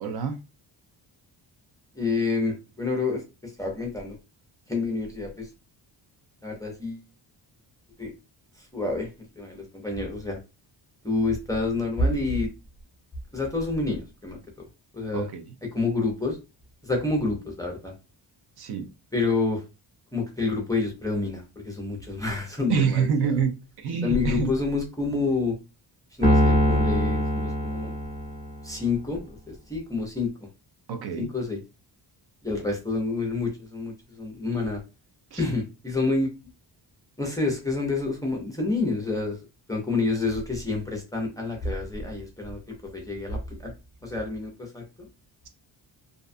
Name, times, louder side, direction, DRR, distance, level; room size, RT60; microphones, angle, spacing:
voice 1, 0.0-0.4 15.1-15.5 18.6-18.9 22.7-23.5 23.8-24.5 30.9-31.3 35.3-35.4, right 6 dB, 60° right, 5 dB, 0.5 m, -26 dB
voice 2, 2.0-4.2 4.7-5.5 6.4-7.0 8.0-8.1 8.6-9.1 9.4-10.4 11.0-12.5 13.3-14.4 14.9-15.3 15.6-16.4 16.8-17.9 19.1-19.6 20.1-23.4 24.0-25.6 26.2-27.9 28.6-30.3 31.2-31.6 32.4-34.8 35.4-36.3 37.2-39.4 39.7-43.7 44.0-45.1, left 3 dB, 10° left, 0 dB, 0.4 m, -28 dB
Piano, 26.2-28.6, equal, 20° right, 0.9 m, -22 dB
2.5 x 2.2 x 2.4 m, 0.28 s
wide cardioid pair, 155°, 45 cm